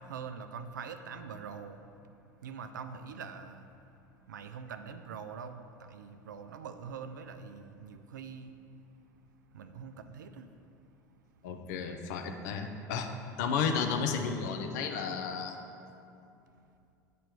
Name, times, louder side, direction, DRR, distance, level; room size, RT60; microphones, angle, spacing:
voice 1, 0.0-1.8 2.4-3.7 4.3-8.5 9.5-10.5, right 6 dB, 85° right, 9 dB, 0.4 m, -44 dB
voice 2, 11.4-13.1 13.4-15.6, left 6 dB, 70° left, 5 dB, 0.6 m, -32 dB
8.8 x 3.0 x 4.5 m, 2.6 s
hypercardioid pair, 75°, 10 cm